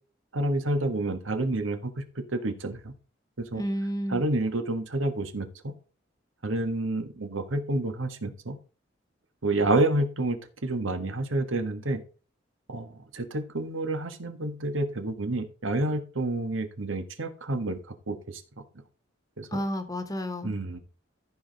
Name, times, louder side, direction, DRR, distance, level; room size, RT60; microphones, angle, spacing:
voice 1, 0.3-2.0 2.3-2.9 3.4-3.6 4.1-5.7 6.4-8.6 9.4-12.0 12.7-17.8 18.1-18.4 19.4-19.6 20.4-20.8, right 2 dB, 85° right, 1.5 m, -29 dB
voice 2, 3.5-4.2 19.5-20.5, equal, 20° left, 1.2 m, -31 dB
14.0 x 4.9 x 4.0 m
head